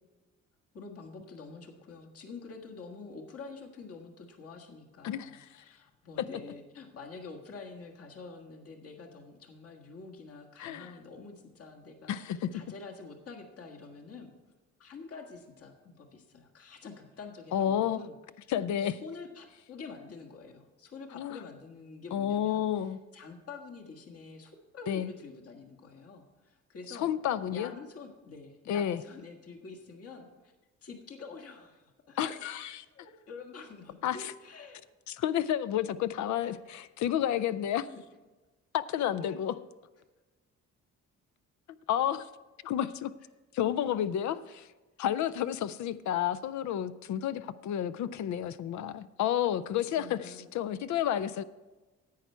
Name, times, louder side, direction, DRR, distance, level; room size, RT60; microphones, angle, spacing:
voice 1, 0.7-14.3 14.8-18.1 18.8-27.1 27.5-30.5 30.8-32.3 32.8-34.8 36.4-36.5 37.9-38.0 39.1-39.4 49.7-50.5, left 4 dB, 50° left, 2 dB, 1.6 m, -47 dB
voice 2, 5.0-5.6 10.6-10.9 12.1-12.5 17.5-18.0 18.5-19.0 21.1-21.4 22.1-23.0 24.9-25.1 26.9-27.7 28.7-29.0 32.2-32.8 34.0-34.3 35.1-37.9 38.7-39.5 41.9-42.3 42.6-43.1 43.5-44.7 45.0-51.4, left 10 dB, 70° left, 14 dB, 0.5 m, -31 dB
10.5 x 8.3 x 4.5 m, 1.2 s
cardioid pair, 90°, 30 cm